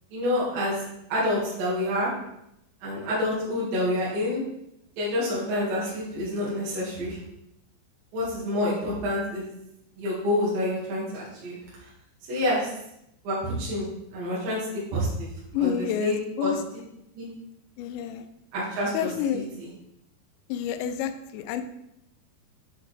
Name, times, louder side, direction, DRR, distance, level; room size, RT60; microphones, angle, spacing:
voice 1, 0.1-0.8 1.1-2.1 2.8-4.4 5.0-7.2 8.1-9.5 10.0-11.6 12.3-12.7 13.2-14.7 14.9-15.3 15.6-16.5 17.1-17.3 18.5-19.7, left 1 dB, 60° right, -7 dB, 3.5 m, -28 dB
voice 2, 15.5-16.6 17.8-18.2 18.9-19.5 20.5-21.6, left 9 dB, 90° left, 8 dB, 2.9 m, -29 dB
8.2 x 5.2 x 3.3 m, 0.81 s
omnidirectional pair, 5.1 m